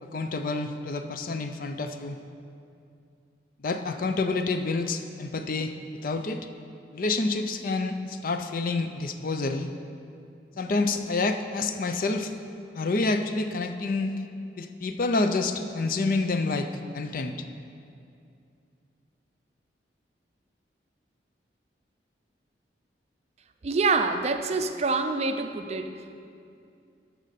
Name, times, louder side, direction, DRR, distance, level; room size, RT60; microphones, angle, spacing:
voice 1, 0.0-2.2 3.6-5.7 6.0-6.4 6.9-9.7 10.6-12.3 12.7-14.2 14.6-17.5, left 3 dB, 50° left, 8 dB, 0.5 m, -28 dB
voice 2, 23.6-26.2, right 4 dB, 40° right, 8 dB, 0.4 m, -26 dB
11.5 x 6.2 x 4.1 m, 2.5 s
head